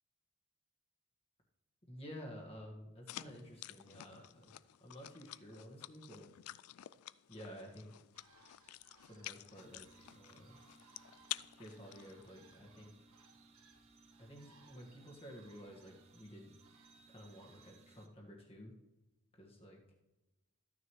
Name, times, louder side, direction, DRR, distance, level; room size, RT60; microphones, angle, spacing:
voice 1, 1.9-4.5 4.8-6.3 7.3-7.9 9.0-10.6 11.5-12.9 14.2-16.5 17.1-18.7 19.3-19.8, equal, 25° left, 0 dB, 1.6 m, -52 dB
sound 1, 3.1-12.5, left 15 dB, 85° left, 0.3 m, -50 dB
sound 2, 8.1-17.7, right 4 dB, 85° right, 1.3 m, -68 dB
sound 3, 9.6-18.1, right 3 dB, 30° right, 0.6 m, -64 dB
14.0 x 9.7 x 3.1 m, 1.0 s
head